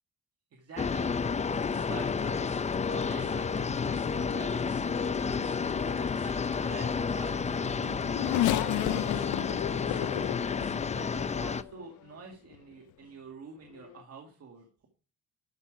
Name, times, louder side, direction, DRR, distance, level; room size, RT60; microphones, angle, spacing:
voice 1, 0.5-1.1 1.8-4.9 5.7-10.3 10.9-14.9, right 5 dB, 55° right, 1 dB, 2.1 m, -48 dB
sound 1, 0.8-11.6, left 5 dB, 25° left, 0.5 m, -31 dB
sound 2, 1.5-10.3 10.6-10.8, right 8 dB, 75° right, 1.0 m, -50 dB
Race car auto racing / Accelerating revving vroom, 7.6-11.9 12.5-12.6 13.8-13.9, left 15 dB, 75° left, 0.5 m, -32 dB
12.0 x 5.7 x 4.6 m, 0.38 s
cardioid pair, 90°, 30 cm